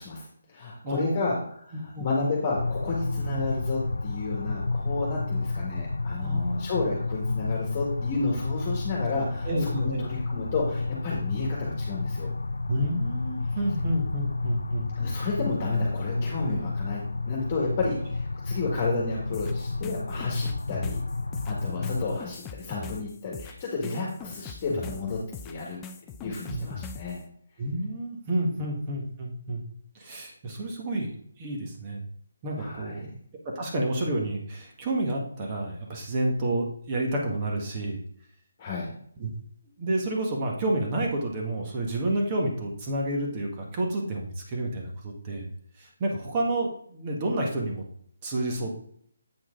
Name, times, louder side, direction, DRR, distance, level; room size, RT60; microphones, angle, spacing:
voice 1, 0.0-12.3 15.0-21.0 21.4-25.2 25.4-25.8 26.2-27.2 32.6-33.1 38.6-38.9, left 3 dB, 30° left, -3 dB, 1.8 m, -31 dB
voice 2, 0.8-1.4 1.9-2.3 6.2-6.6 9.4-10.2 12.7-14.9 26.5-26.7 27.6-29.6 29.9-32.1 32.4-33.1 33.5-38.0 39.2-39.3 39.8-45.5 45.8-47.8 48.2-48.7, right 1 dB, 30° right, 0 dB, 1.6 m, -30 dB
sound 1, 2.6-22.2, left 3 dB, 90° left, 0.4 m, -31 dB
sound 2, 19.3-27.2, left 5 dB, 15° left, 0.5 m, -40 dB
8.5 x 4.5 x 3.8 m, 0.64 s
hypercardioid pair, 160°, 0 cm